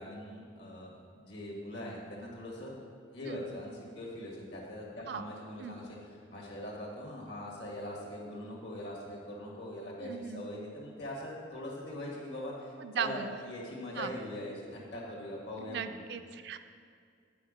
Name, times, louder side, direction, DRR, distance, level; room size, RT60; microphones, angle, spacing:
voice 1, 0.0-2.8 3.1-6.0 6.3-16.0, left 1 dB, 70° left, -2 dB, 1.9 m, -42 dB
voice 2, 10.0-10.4 12.8-13.3 14.0-14.1 15.7-16.6, right 7 dB, 65° right, 9 dB, 0.4 m, -37 dB
9.2 x 4.9 x 5.1 m, 2.2 s
head